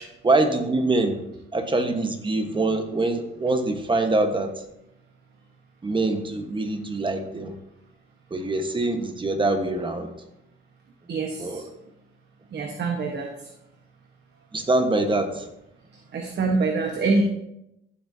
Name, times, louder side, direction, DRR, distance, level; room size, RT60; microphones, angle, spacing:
voice 1, 0.2-1.2 1.5-4.5 5.8-7.6 8.3-10.1 11.4-11.6 14.5-15.5, right 2 dB, 25° right, 1.4 m, -24 dB
voice 2, 11.1-11.6 12.5-13.3 16.1-17.2, right 3 dB, 60° right, 1.4 m, -25 dB
15.0 x 7.5 x 2.9 m
cardioid pair, 90°, 20 cm